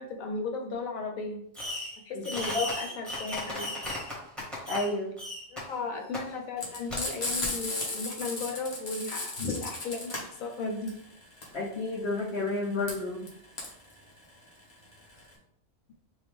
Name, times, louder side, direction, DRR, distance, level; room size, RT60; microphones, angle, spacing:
voice 1, 0.0-1.4 2.1-3.7 5.5-10.9, left 3 dB, 75° left, 3 dB, 1.2 m, -35 dB
Fireworks, 1.5-2.0 2.2-4.9 5.2-5.6 6.1-6.2 6.9-7.0, left 1 dB, ahead, 1.3 m, -35 dB
voice 2, 2.1-2.6 4.7-5.1 9.4-9.5 11.5-13.3, left 2 dB, 55° left, -2 dB, 0.9 m, -31 dB
Frying (food), 6.6-15.3, left 2 dB, 30° left, 1.1 m, -35 dB
5.4 x 2.6 x 3.3 m, 0.70 s
omnidirectional pair, 1.5 m